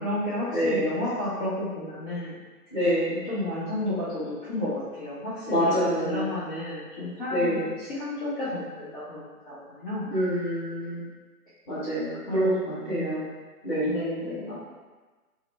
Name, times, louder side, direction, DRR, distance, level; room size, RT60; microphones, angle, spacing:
voice 1, 0.0-2.3 3.3-10.0 12.3-13.3 13.8-14.5, left 1 dB, 35° left, -13 dB, 0.9 m, -32 dB
voice 2, 0.5-0.9 2.7-3.2 5.4-6.3 7.3-7.7 10.1-11.1 11.7-12.6 12.9-13.2 13.6-13.9 14.5-14.6, equal, 15° left, -13 dB, 1.3 m, -26 dB
3.7 x 2.1 x 3.3 m, 1.3 s
figure-of-eight pair, 135°, 46 cm